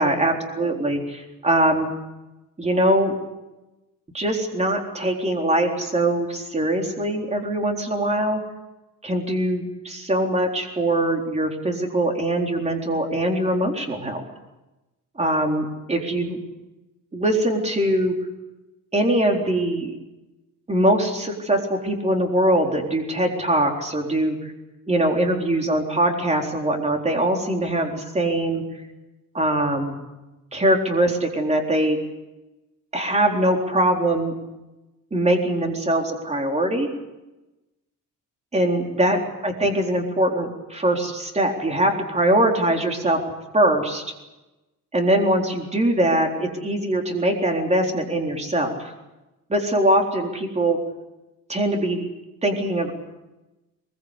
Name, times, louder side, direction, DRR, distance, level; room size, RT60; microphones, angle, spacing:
voice 1, 0.0-1.9 2.6-3.2 4.1-8.4 9.0-14.2 15.2-16.4 17.1-18.1 18.9-19.9 20.7-24.5 24.9-28.6 29.3-30.0 30.5-32.0 32.9-34.3 35.1-36.9 38.5-43.2 43.5-44.0 44.9-48.9 49.5-50.8 51.5-52.1 52.4-52.9, right 1 dB, 20° right, 2 dB, 4.0 m, -22 dB
22.5 x 22.0 x 8.3 m, 1.0 s
cardioid pair, 140°, 34 cm